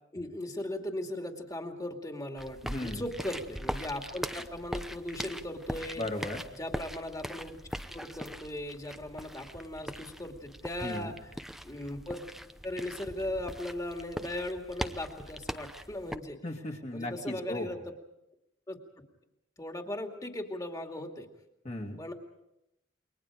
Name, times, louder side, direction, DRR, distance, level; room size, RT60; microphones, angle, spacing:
voice 1, 0.1-6.1 6.6-7.6 7.9-11.4 11.6-12.2 12.6-16.4 16.9-17.9 18.7-19.0 19.6-21.3 22.0-22.1, left 1 dB, 20° left, 3 dB, 2.4 m, -38 dB
sound 1, 2.4-16.2, equal, ahead, 0.7 m, -41 dB
voice 2, 2.6-3.0 6.0-6.4 10.8-11.1 16.4-17.7 21.6-22.0, left 1 dB, 35° left, 3 dB, 2.5 m, -36 dB
28.5 x 23.0 x 5.1 m, 0.84 s
head